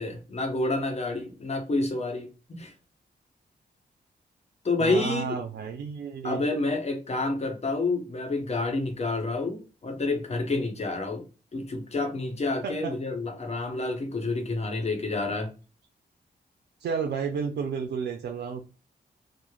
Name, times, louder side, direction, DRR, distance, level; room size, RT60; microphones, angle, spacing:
voice 1, 0.0-2.7 4.6-5.4 6.2-11.2 11.5-15.5, left 2 dB, 40° left, 0.8 m, -29 dB
voice 2, 4.8-6.4 12.6-13.0 16.8-18.6, right 6 dB, 85° right, 0.4 m, -31 dB
3.1 x 2.0 x 2.2 m
cardioid pair, 90°, 17 cm